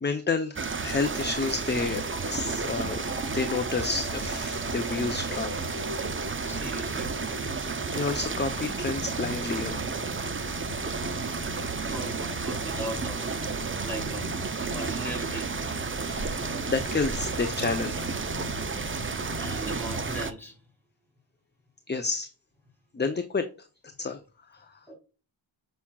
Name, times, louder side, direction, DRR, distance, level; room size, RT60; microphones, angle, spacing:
voice 1, 0.0-2.0 2.3-3.0 3.3-5.5 7.9-9.8 16.1-16.4 16.7-18.1 19.2-19.3 21.9-22.3 22.9-23.5 24.0-24.2, left 4 dB, 20° left, 0.6 m, -29 dB
sound 1, 0.5-20.3, right 5 dB, 25° right, 0.6 m, -32 dB
sound 2, 1.9-20.3, left 5 dB, 75° left, 1.2 m, -42 dB
voice 2, 6.5-7.1 11.9-13.6 13.8-14.3 14.7-15.5 19.4-20.5 24.9-25.0, right 1 dB, 5° left, 3.7 m, -38 dB
7.2 x 5.6 x 2.3 m
wide cardioid pair, 85°, 49 cm